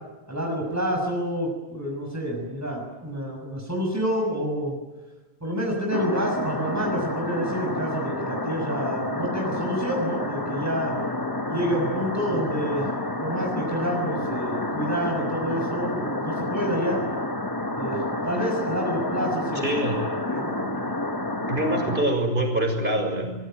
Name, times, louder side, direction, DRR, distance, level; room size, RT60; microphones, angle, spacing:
voice 1, 0.3-4.8 5.4-10.9 11.5-12.9 13.2-17.0 17.8-19.7 20.3-20.5, equal, 15° right, -1 dB, 6.6 m, -28 dB
sound 1, 5.9-22.0, left 1 dB, 20° left, 1.5 m, -29 dB
voice 2, 19.5-20.0 21.5-23.3, right 1 dB, 50° right, 4 dB, 6.3 m, -24 dB
25.5 x 22.0 x 9.2 m, 1.1 s
omnidirectional pair, 1.1 m